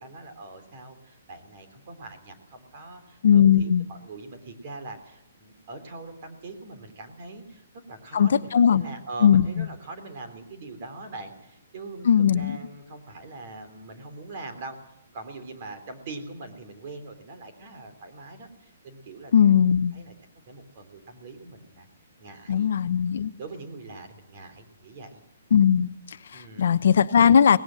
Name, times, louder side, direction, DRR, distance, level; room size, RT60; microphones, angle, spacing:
voice 1, 0.0-14.8 15.1-19.5 19.9-20.1 20.5-21.9 22.2-22.7 23.4-25.2 26.3-26.7, right 3 dB, 30° right, 6 dB, 3.3 m, -42 dB
voice 2, 3.2-3.9 8.1-8.8 9.2-9.7 12.0-12.6 19.3-19.9 22.5-23.3 25.5-27.6, left 8 dB, 55° left, 13 dB, 0.8 m, -19 dB
23.0 x 19.0 x 7.7 m, 0.75 s
hypercardioid pair, 180°, 0 cm